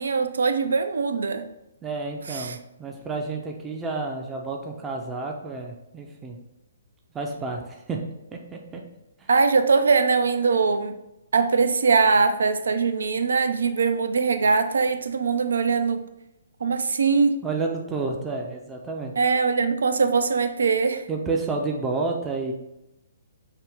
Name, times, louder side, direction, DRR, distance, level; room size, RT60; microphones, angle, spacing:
voice 1, 0.0-1.5 2.3-2.6 9.3-11.0 11.3-16.1 16.6-17.4 19.2-21.1, right 4 dB, 70° right, 9 dB, 0.4 m, -22 dB
voice 2, 1.8-6.4 7.1-8.0 8.3-8.8 9.2-9.3 17.4-19.1 21.1-22.5, right 3 dB, 15° right, 1 dB, 0.5 m, -30 dB
5.6 x 2.1 x 3.3 m, 0.89 s
figure-of-eight pair, 125°, 0 cm